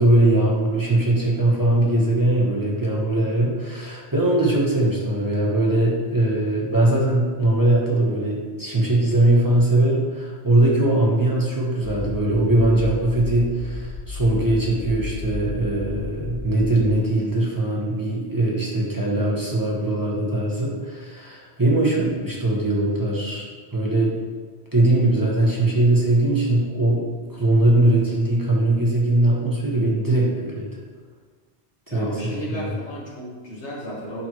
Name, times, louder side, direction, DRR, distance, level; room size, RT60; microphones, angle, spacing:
voice 1, 0.0-24.1 24.7-27.0 27.3-30.7 31.9-32.7, right 1 dB, 20° right, -5 dB, 1.1 m, -21 dB
sound 1, 11.8-16.9, left 3 dB, 55° left, 0.3 m, -33 dB
voice 2, 31.9-34.3, equal, 80° left, -4 dB, 1.8 m, -34 dB
9.9 x 4.5 x 3.1 m, 1.5 s
omnidirectional pair, 1.2 m